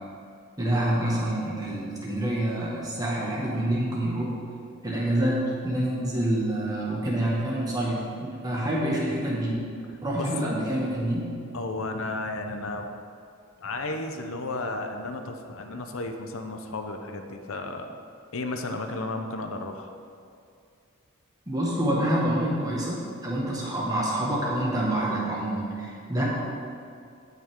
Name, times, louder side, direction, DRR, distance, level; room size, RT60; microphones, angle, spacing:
voice 1, 0.6-4.3 4.8-9.6 10.0-11.2 21.5-26.2, right 1 dB, 15° right, -5 dB, 1.7 m, -27 dB
voice 2, 10.1-10.5 11.5-12.9 13.6-18.0 18.3-19.9, left 2 dB, 70° left, 5 dB, 0.7 m, -33 dB
17.0 x 5.7 x 3.7 m, 2.5 s
head